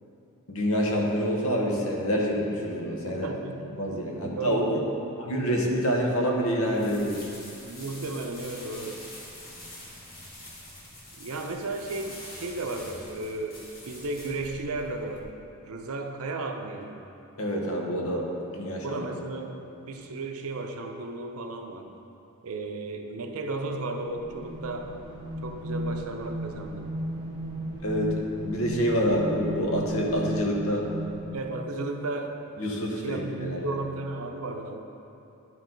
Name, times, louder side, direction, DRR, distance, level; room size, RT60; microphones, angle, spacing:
voice 1, 0.5-3.3 3.7-4.8 5.3-7.2 17.4-18.3 18.5-19.0 27.8-30.9 32.6-33.7, equal, 75° left, -1 dB, 1.1 m, -27 dB
voice 2, 3.2-3.7 4.2-5.2 7.7-9.0 11.2-15.3 15.7-17.0 18.8-21.9 22.4-24.9 25.4-26.9 31.3-32.4 33.0-34.8, right 2 dB, 80° right, 4 dB, 0.6 m, -34 dB
sound 1, 6.7-15.2, left 1 dB, 40° left, 1.3 m, -45 dB
sound 2, 24.1-31.7, right 1 dB, 20° right, 1.2 m, -35 dB
10.5 x 4.6 x 3.9 m, 2.8 s
head